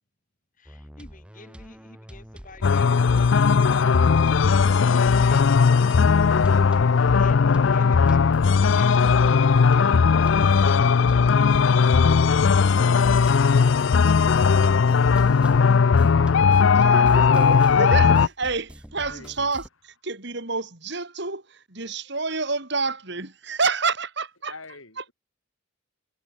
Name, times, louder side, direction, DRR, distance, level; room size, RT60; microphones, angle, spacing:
voice 1, 0.6-4.5 5.2-12.9, left 3 dB, 40° left, 6.7 m, -47 dB
sound 1, 0.6-7.3 7.5-19.7, equal, 5° right, 3.2 m, -45 dB
sound 2, 2.6-18.3, left 5 dB, 65° left, 0.4 m, -18 dB
voice 2, 16.4-19.7 20.0-21.4 21.7-24.5 25.0-25.1, right 4 dB, 55° right, 3.2 m, -28 dB
voice 3, 19.0-19.3 21.9-22.0 24.5-25.1, left 3 dB, 80° left, 7.1 m, -44 dB
head